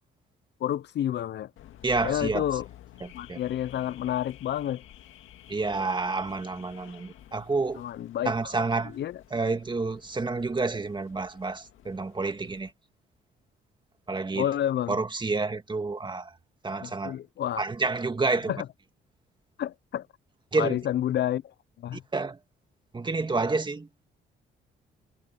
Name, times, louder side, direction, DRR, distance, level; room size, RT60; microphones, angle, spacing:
voice 1, 0.6-1.5 2.0-2.7 3.1-4.8 7.8-8.3 8.9-9.2 14.3-15.0 16.8-17.6 18.5-18.7 19.6-20.1 20.6-22.0, left 11 dB, 60° left, 0.6 m, -29 dB
Car / Alarm, 1.6-12.7, left 12 dB, 80° left, 2.1 m, -51 dB
voice 2, 1.8-2.4 3.0-3.4 5.5-7.8 8.3-9.0 9.3-12.7 14.1-14.5 14.9-16.3 16.6-17.2 17.6-18.5 20.5-20.8 21.9-22.4 22.9-23.9, right 3 dB, 25° right, 1.9 m, -29 dB
cardioid pair, 90°, 20 cm